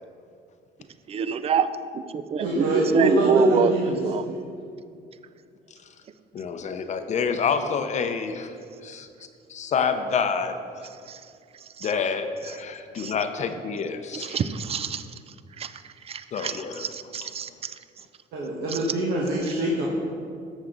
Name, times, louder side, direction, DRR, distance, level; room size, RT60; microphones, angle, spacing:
voice 1, 1.1-1.7 1.9-3.7 4.0-4.2 11.1-11.2 11.8-11.9 13.0-13.1 14.2-15.0 15.6-17.7, right 7 dB, 35° right, 13 dB, 0.5 m, -26 dB
voice 2, 2.4-4.0 18.3-19.9, right 1 dB, 75° right, -4 dB, 1.5 m, -24 dB
voice 3, 6.3-8.5 8.8-9.1 9.5-10.6 11.8-14.4 16.3-16.9, left 6 dB, 45° left, 8 dB, 0.7 m, -27 dB
13.5 x 6.5 x 3.8 m, 2.4 s
cardioid pair, 110°, 17 cm